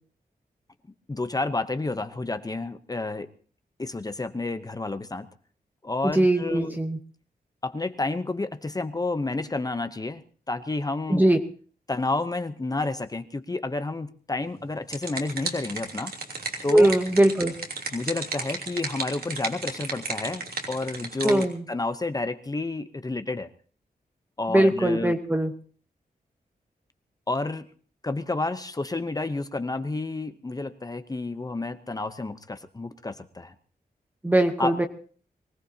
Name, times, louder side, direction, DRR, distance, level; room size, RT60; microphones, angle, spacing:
voice 1, 1.1-3.3 3.8-5.3 5.8-6.8 7.6-10.2 10.5-11.2 11.9-16.1 16.6-16.9 17.9-23.5 24.4-25.2 27.3-27.7 28.0-33.5 34.6-34.8, left 2 dB, 25° left, 10 dB, 0.8 m, -30 dB
voice 2, 6.0-7.0 11.1-11.4 16.7-17.5 21.2-21.6 24.5-25.5 34.2-34.9, right 1 dB, 10° right, 6 dB, 1.0 m, -21 dB
sound 1, 14.6-21.5, right 3 dB, 70° right, 3.1 m, -34 dB
23.5 x 18.5 x 2.8 m, 0.43 s
wide cardioid pair, 155°, 16 cm